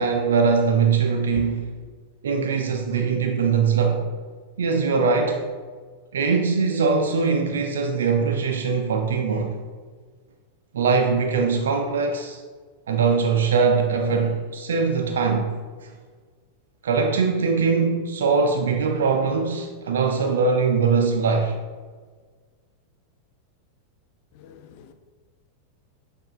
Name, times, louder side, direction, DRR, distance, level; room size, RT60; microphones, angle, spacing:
voice 1, 0.0-1.8 2.2-4.1 4.6-5.4 6.1-9.5 10.7-12.4 12.9-15.5 16.8-21.5, right 5 dB, 65° right, 0.3 m, -21 dB
voice 2, 24.3-24.9, left 5 dB, 45° left, 0.3 m, -39 dB
6.3 x 2.4 x 3.1 m
figure-of-eight pair, 90°, 0 cm